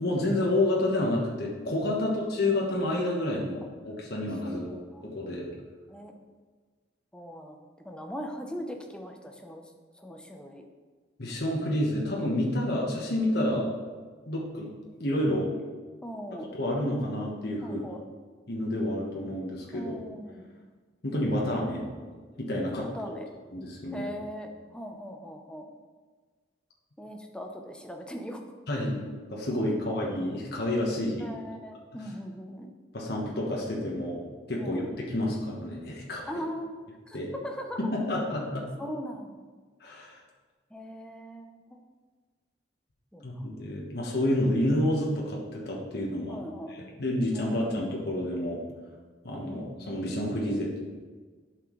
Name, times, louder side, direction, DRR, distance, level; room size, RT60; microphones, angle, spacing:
voice 1, 0.0-4.7 5.0-5.5 11.2-13.7 14.3-14.7 15.0-15.5 16.5-17.8 18.5-19.9 21.0-21.9 22.4-22.9 23.5-24.1 28.7-29.0 29.3-31.3 32.9-34.2 34.5-36.4 37.1-37.3 37.8-38.7 39.8-40.2 43.2-46.4 46.7-48.6 49.2-50.8, left 1 dB, 60° left, -3 dB, 1.3 m, -29 dB
voice 2, 4.4-5.1 5.9-6.1 7.1-9.6 10.0-10.6 13.4-13.6 16.0-16.5 17.6-18.0 19.7-20.5 22.8-23.3 23.9-25.7 27.0-28.4 31.2-32.7 34.6-34.9 36.3-36.7 37.1-37.9 38.6-39.3 40.7-41.8 43.1-43.5 46.3-46.7 47.3-47.7 49.4-49.7, equal, 5° left, 2 dB, 0.7 m, -40 dB
10.5 x 6.1 x 3.2 m, 1.5 s
head